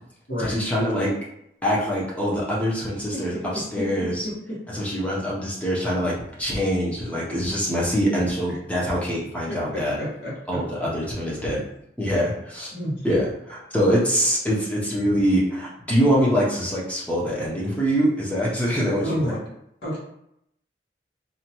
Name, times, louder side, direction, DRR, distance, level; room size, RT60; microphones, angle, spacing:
voice 1, 0.4-1.1 1.6-4.3 4.7-10.0 10.5-11.6 12.0-12.7 13.0-19.4, equal, 10° left, -6 dB, 0.7 m, -24 dB
voice 2, 10.0-10.6 12.7-12.9 19.0-19.4 19.8-20.0, equal, 65° left, -8 dB, 1.3 m, -28 dB
2.7 x 2.3 x 2.9 m, 0.78 s
head